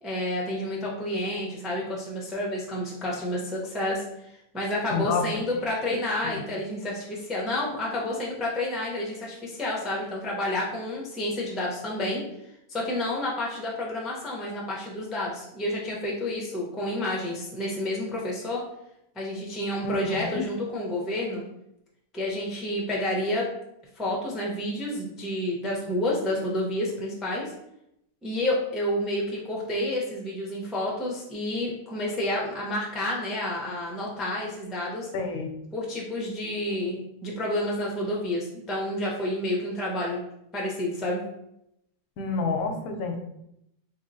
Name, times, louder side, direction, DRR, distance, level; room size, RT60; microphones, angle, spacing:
voice 1, 0.0-12.2 12.7-18.6 19.2-21.4 22.1-23.5 24.0-27.5 28.2-35.1 35.7-40.2 40.5-41.2, left 1 dB, ahead, -4 dB, 0.4 m, -30 dB
voice 2, 4.9-5.3 5.9-6.0 6.2-6.4 19.8-20.4 35.1-35.5 42.2-43.2, left 5 dB, 85° left, 5 dB, 1.1 m, -29 dB
3.9 x 3.0 x 2.6 m, 0.81 s
omnidirectional pair, 1.5 m